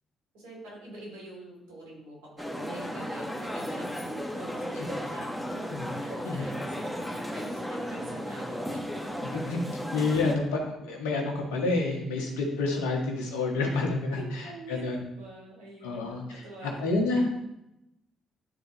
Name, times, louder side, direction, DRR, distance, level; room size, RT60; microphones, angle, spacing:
voice 1, 0.3-5.6 5.9-9.0 9.3-9.4 13.7-13.8 14.1-14.9 15.1-17.0, right 1 dB, 85° right, -3 dB, 2.6 m, -45 dB
sound 1, 2.4-10.3, equal, 5° left, 1.5 m, -35 dB
voice 2, 9.9-15.0 15.8-17.3, left 3 dB, 85° left, 0 dB, 1.5 m, -29 dB
10.5 x 4.0 x 2.9 m, 0.86 s
hypercardioid pair, 50°, 0 cm